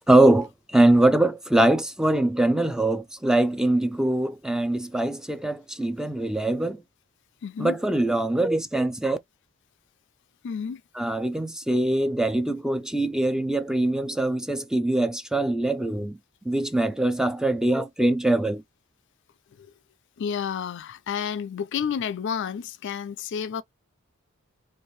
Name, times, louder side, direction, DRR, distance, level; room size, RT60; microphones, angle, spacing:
voice 1, 0.1-6.8 7.6-9.2 11.0-16.2 16.5-18.6, right 1 dB, 5° right, 0.4 m, -23 dB
voice 2, 7.4-7.8 10.4-10.8 19.6-19.7 20.2-23.6, left 7 dB, 60° left, 0.4 m, -30 dB
4.4 x 2.5 x 3.1 m
head